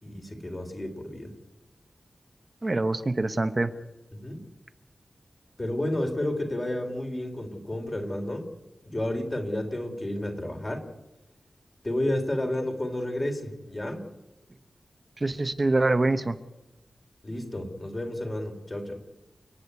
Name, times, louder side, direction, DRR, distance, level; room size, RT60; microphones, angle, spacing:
voice 1, 0.0-1.3 4.1-4.4 5.6-8.5 8.9-10.9 11.8-14.1 17.2-19.0, left 1 dB, 25° left, 4 dB, 3.6 m, -31 dB
voice 2, 2.6-3.7 15.2-16.4, right 2 dB, 30° right, 10 dB, 0.9 m, -25 dB
29.5 x 10.0 x 9.6 m, 1.0 s
wide cardioid pair, 105°, 0 cm